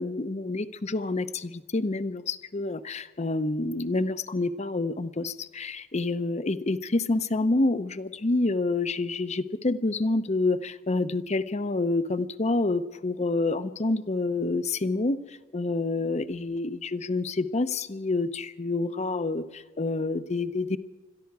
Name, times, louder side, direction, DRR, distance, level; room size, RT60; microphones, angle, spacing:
voice 1, 0.0-15.2 15.5-20.8, left 2 dB, 35° left, 13 dB, 0.7 m, -28 dB
22.0 x 13.5 x 4.8 m, 1.3 s
head